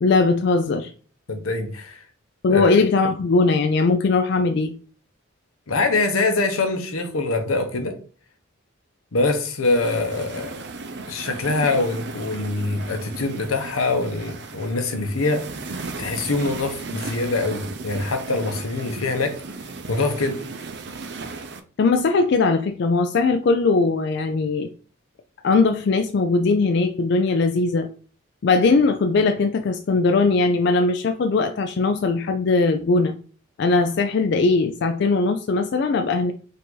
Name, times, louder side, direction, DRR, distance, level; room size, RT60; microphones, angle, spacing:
voice 1, 0.0-0.9 2.4-4.7 21.8-24.7 25.4-27.9 28.4-33.1 33.6-36.3, left 3 dB, 55° left, 0.3 m, -20 dB
voice 2, 1.3-2.0 2.5-2.7 5.7-7.9 9.1-10.6 11.1-15.5 16.0-19.3 19.9-20.4, left 3 dB, 90° left, 0.9 m, -24 dB
sound 1, 9.6-21.6, right 3 dB, 55° right, 0.5 m, -35 dB
5.3 x 2.6 x 3.8 m
head